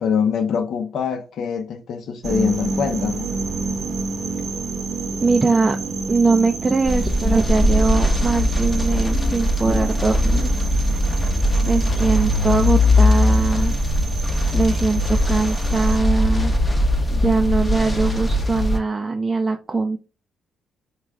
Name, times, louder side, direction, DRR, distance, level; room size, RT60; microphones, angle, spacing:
voice 1, 0.0-3.3, left 7 dB, 70° left, 0.7 m, -24 dB
sound 1, 2.2-16.0, right 4 dB, 50° right, 0.8 m, -30 dB
voice 2, 5.2-5.8 6.1-10.5 11.7-13.7 14.5-16.5 17.1-20.0, right 3 dB, 25° right, 0.4 m, -21 dB
sound 2, 6.8-18.8, left 1 dB, 20° left, 0.7 m, -20 dB
3.7 x 2.4 x 3.2 m
cardioid pair, 90°, 0 cm